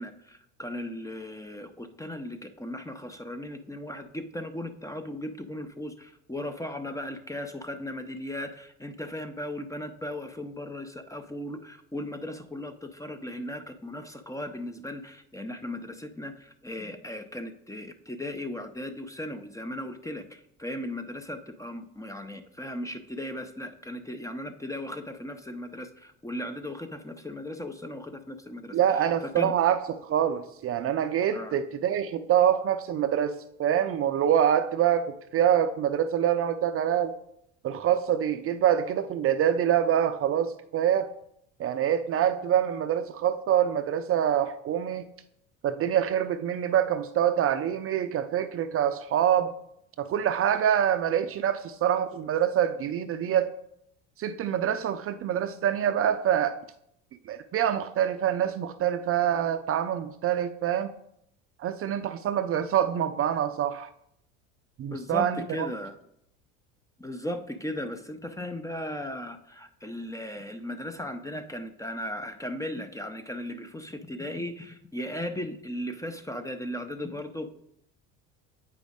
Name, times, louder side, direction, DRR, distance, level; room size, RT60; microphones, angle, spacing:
voice 1, 0.0-29.5 31.3-31.6 64.9-65.9 67.0-77.5, left 1 dB, 10° left, 8 dB, 0.5 m, -37 dB
voice 2, 28.7-33.3 33.6-37.1 37.6-41.1 41.6-45.1 45.6-49.5 50.0-53.5 54.2-56.6 57.3-60.9 61.6-63.9 64.8-65.7, right 9 dB, 40° right, 10 dB, 0.5 m, -25 dB
8.3 x 5.0 x 3.6 m, 0.75 s
supercardioid pair, 90°, 36 cm